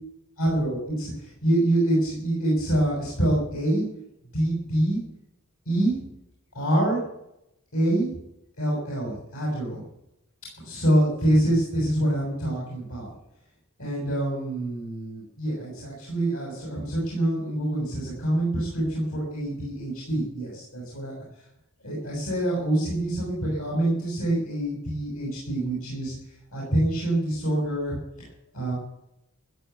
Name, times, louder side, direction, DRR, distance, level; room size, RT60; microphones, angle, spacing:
voice 1, 0.4-3.8 4.3-5.0 5.7-6.0 6.5-7.0 7.7-8.1 8.6-9.8 10.6-13.1 13.8-21.2 21.8-26.2 26.5-28.3 28.5-28.7, right 1 dB, 70° left, -4 dB, 7.0 m, -26 dB
15.5 x 7.9 x 9.3 m, 0.81 s
head